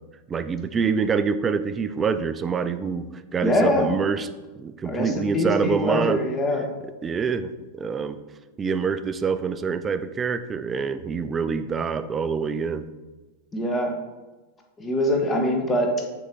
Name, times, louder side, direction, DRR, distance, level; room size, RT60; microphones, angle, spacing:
voice 1, 0.3-4.3 4.6-6.2 7.0-8.2 8.6-12.9, right 5 dB, 20° right, 12 dB, 0.3 m, -26 dB
voice 2, 3.4-3.9 4.9-6.6 13.5-13.9 14.8-16.0, left 1 dB, 20° left, 2 dB, 1.0 m, -23 dB
6.3 x 3.7 x 4.5 m, 1.2 s
figure-of-eight pair, 90°, 0 cm